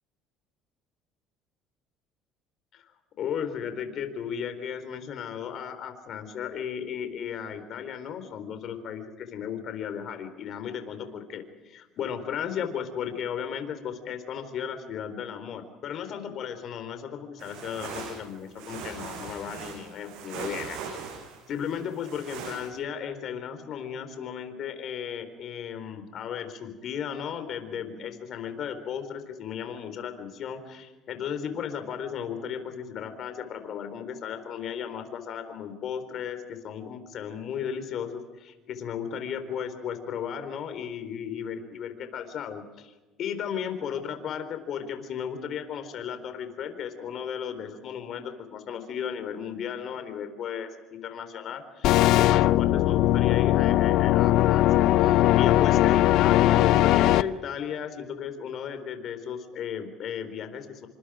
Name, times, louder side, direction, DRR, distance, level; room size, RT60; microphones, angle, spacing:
voice 1, 3.2-20.8 21.5-42.9 43.2-60.9, left 8 dB, 55° left, 8 dB, 4.2 m, -35 dB
sound 1, 17.4-22.7, right 6 dB, 80° right, 6.9 m, -40 dB
sound 2, 51.8-57.2, left 15 dB, 70° left, 0.7 m, -20 dB
28.5 x 26.0 x 5.1 m, 1.2 s
cardioid pair, 120°, 0 cm